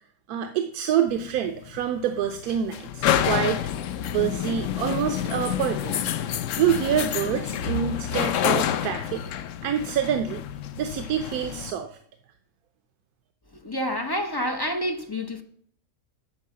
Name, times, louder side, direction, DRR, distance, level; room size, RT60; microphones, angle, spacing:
voice 1, 0.3-3.6 4.1-5.9 6.5-9.2 9.6-10.4 10.8-12.0, right 9 dB, 85° right, 1.2 m, -26 dB
sound 1, 1.1-11.7, left 10 dB, 65° left, 0.9 m, -28 dB
voice 2, 13.6-15.4, equal, 25° left, 0.6 m, -28 dB
12.5 x 4.6 x 7.4 m
omnidirectional pair, 1.6 m